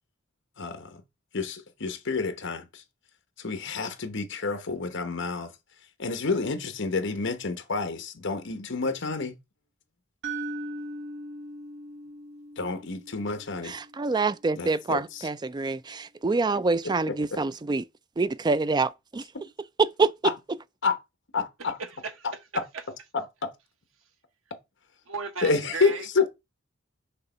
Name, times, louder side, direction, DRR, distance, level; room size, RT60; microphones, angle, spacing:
voice 1, 0.6-1.0 1.3-2.8 3.4-5.5 6.0-9.4 12.6-13.7 14.6-15.3 16.8-17.4 20.2-20.3 20.8-21.0 21.3-21.8 22.2-22.3 23.1-23.5 25.4-26.4, left 4 dB, 65° left, 1.1 m, -29 dB
sound 1, 10.2-14.3, right 2 dB, 60° right, 1.0 m, -39 dB
voice 2, 13.6-17.8 18.2-19.2 19.8-20.1, right 3 dB, 20° right, 0.4 m, -26 dB
voice 3, 21.8-22.1 22.7-22.8 25.1-26.1, right 4 dB, 90° right, 1.2 m, -35 dB
6.7 x 2.9 x 5.5 m
head